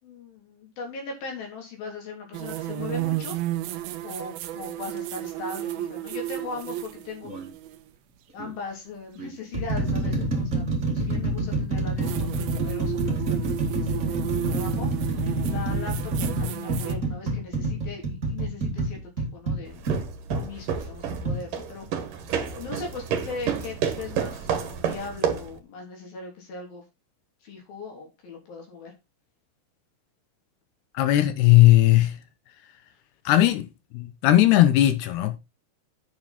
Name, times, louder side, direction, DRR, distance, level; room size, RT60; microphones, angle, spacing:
voice 1, 0.0-3.4 4.0-7.3 8.3-10.6 10.9-14.9 15.4-19.9 20.3-22.1 22.5-26.8 27.4-28.9, left 3 dB, 55° left, 4.7 m, -39 dB
sound 1, 2.3-7.8 9.9-10.0 12.0-17.0, right 13 dB, 75° right, 2.4 m, -33 dB
sound 2, 7.2-7.5 8.4-8.5 9.2-20.5 21.2-21.4, right 2 dB, 30° right, 1.6 m, -27 dB
sound 3, 19.7-25.6, right 7 dB, 60° right, 2.7 m, -30 dB
voice 2, 30.9-32.2 33.3-33.7 33.9-35.4, left 14 dB, 75° left, 2.8 m, -18 dB
9.7 x 7.5 x 4.3 m
omnidirectional pair, 5.2 m